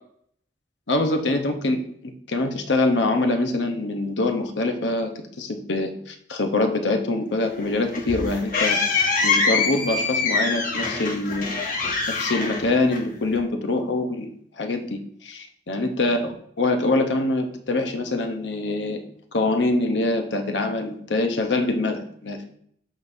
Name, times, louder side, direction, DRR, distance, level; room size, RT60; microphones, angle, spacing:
voice 1, 0.9-5.1 5.4-8.8 9.2-11.5 12.1-14.3 14.6-19.0 19.3-22.4, left 2 dB, 85° left, 5 dB, 0.9 m, -24 dB
sound 1, 7.6-13.4, left 4 dB, 45° left, 1.1 m, -24 dB
11.5 x 3.9 x 2.7 m, 0.65 s
head